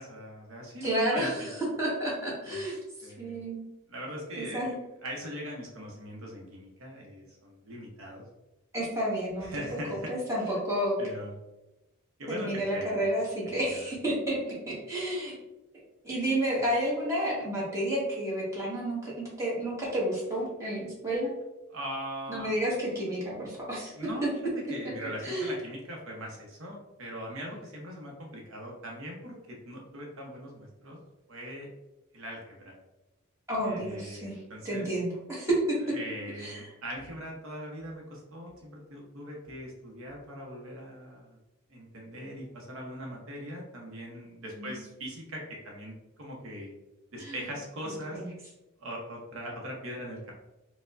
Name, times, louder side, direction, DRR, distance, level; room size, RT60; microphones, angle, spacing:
voice 1, 0.0-1.5 2.5-2.6 3.0-3.4 3.9-4.7 5.0-8.3 9.4-10.1 11.0-11.3 12.2-13.0 13.6-13.8 21.7-22.5 24.0-24.3 24.7-31.0 31.3-31.7 32.1-32.8 33.6-35.0 35.9-41.4 41.7-46.7 47.1-48.2 48.8-50.3, equal, 65° right, -1 dB, 0.7 m, -40 dB
voice 2, 0.8-3.6 4.4-4.8 8.7-9.6 10.1-11.0 12.3-15.3 16.0-21.3 22.3-23.9 25.2-25.5 33.5-34.4 34.6-35.8 36.4-36.7 44.5-44.8 47.2-47.4 47.9-48.3, right 1 dB, 15° right, -6 dB, 1.1 m, -31 dB
4.3 x 2.1 x 2.4 m, 0.99 s
head